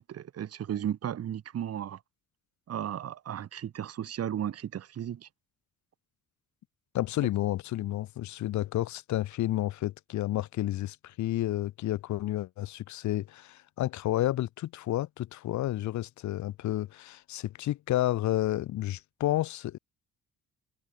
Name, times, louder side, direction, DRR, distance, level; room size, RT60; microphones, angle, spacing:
voice 1, 0.0-2.0 2.7-5.3 7.2-7.3, right 10 dB, 55° right, 1.3 m, -35 dB
voice 2, 6.9-19.8, left 14 dB, 70° left, 0.8 m, -31 dB
cardioid pair, 90°, 30 cm